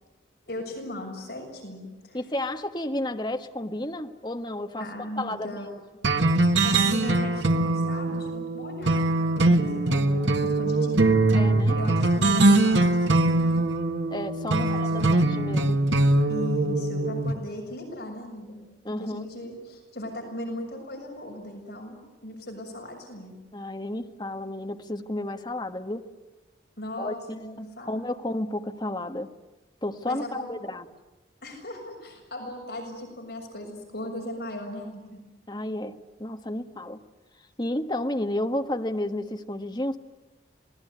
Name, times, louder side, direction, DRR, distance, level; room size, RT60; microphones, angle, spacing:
voice 1, 0.5-2.2 4.8-5.7 6.6-11.1 11.7-13.7 14.6-15.2 16.3-18.6 19.0-23.4 26.8-28.0 30.0-30.5 31.4-35.2, left 1 dB, 60° left, 1 dB, 6.8 m, -38 dB
voice 2, 2.1-4.9 5.2-5.6 11.3-11.8 14.1-15.8 18.8-19.3 23.5-26.0 27.0-29.3 29.8-30.8 35.5-37.0 37.6-40.0, left 1 dB, 25° left, 6 dB, 1.3 m, -32 dB
sound 1, 6.0-17.3, right 2 dB, 75° right, 1.7 m, -22 dB
27.5 x 19.5 x 9.5 m, 1.2 s
head